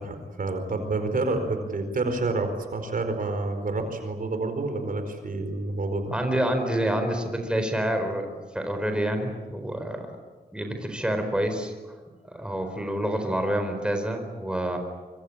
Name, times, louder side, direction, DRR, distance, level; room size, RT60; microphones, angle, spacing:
voice 1, 0.0-6.1, right 2 dB, 60° right, 7 dB, 4.6 m, -28 dB
voice 2, 6.1-8.3 8.5-10.2 10.5-12.0 12.3-14.8, right 1 dB, 5° right, 5 dB, 4.5 m, -27 dB
25.5 x 24.5 x 8.8 m, 1.4 s
wide cardioid pair, 115°, 16 cm